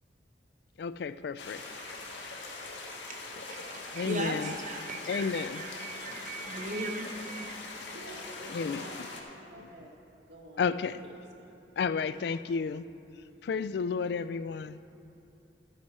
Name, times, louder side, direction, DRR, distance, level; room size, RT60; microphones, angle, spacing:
voice 1, 0.8-1.6 3.9-4.5 5.1-5.6 8.5-8.8 10.6-11.0 11.8-12.8 13.4-14.8, left 5 dB, 60° left, 15 dB, 0.3 m, -31 dB
sound 1, 1.4-9.2, left 3 dB, 85° left, 1.6 m, -42 dB
voice 2, 3.1-7.6, right 2 dB, 45° right, 3 dB, 1.1 m, -38 dB
voice 3, 7.8-9.9 10.3-11.5 13.1-13.4, right 1 dB, 70° right, 0 dB, 1.6 m, -50 dB
14.0 x 9.1 x 4.3 m, 2.7 s
head